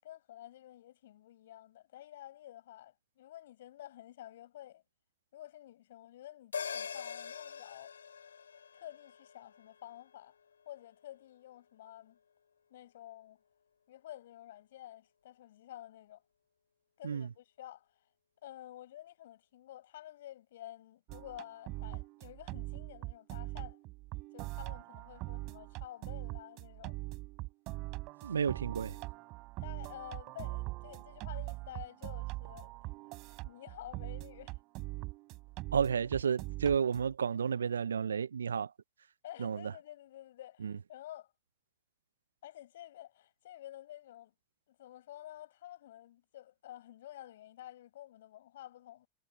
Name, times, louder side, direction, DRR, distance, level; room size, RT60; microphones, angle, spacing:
voice 1, 0.0-4.8 5.3-7.9 8.7-10.3 10.7-12.2 12.7-13.4 13.9-16.2 17.0-17.9 18.4-23.8 24.3-27.0 29.6-32.9 33.2-34.6 39.2-41.3 42.4-44.3 44.7-49.1, left 13 dB, 70° left, 7.4 m, -50 dB
sound 1, 6.5-11.2 11.6-11.7, left 7 dB, 85° left, 6.2 m, -44 dB
sound 2, 21.1-37.1, right 22 dB, 50° right, 4.3 m, -42 dB
voice 2, 28.2-29.0 35.7-38.7 39.4-39.7 40.6-40.7, right 7 dB, 85° right, 0.3 m, -31 dB
hypercardioid pair, 95°, 0 cm